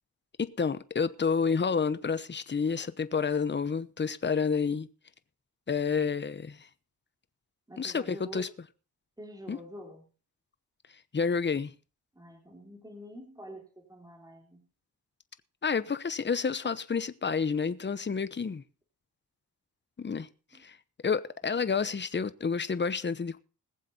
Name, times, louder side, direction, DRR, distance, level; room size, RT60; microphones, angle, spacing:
voice 1, 0.4-4.9 5.7-6.7 7.8-8.5 9.5-9.6 11.1-11.7 15.6-18.6 20.0-20.3 20.6-20.8 21.0-23.4, left 5 dB, 25° left, 0.9 m, -29 dB
voice 2, 7.7-8.5 9.2-10.0 12.1-14.6 20.5-20.6 21.6-21.7, equal, 10° right, 3.4 m, -47 dB
21.0 x 7.4 x 4.1 m
cardioid pair, 85°, 41 cm